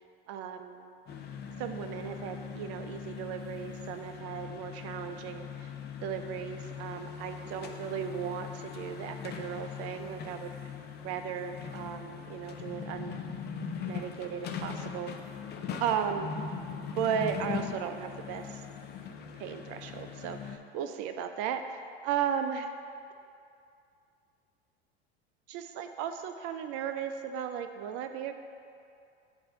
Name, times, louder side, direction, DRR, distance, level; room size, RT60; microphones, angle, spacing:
voice 1, 0.3-0.9 1.6-5.7 6.0-10.7 11.0-13.2 13.9-15.2 15.8-16.4 17.0-18.6 19.4-22.7 25.5-28.3, right 8 dB, 50° right, 7 dB, 0.5 m, -36 dB
sound 1, 1.1-20.6, left 6 dB, 30° left, 0.5 m, -40 dB
7.6 x 2.7 x 5.4 m, 2.5 s
hypercardioid pair, 85°, 32 cm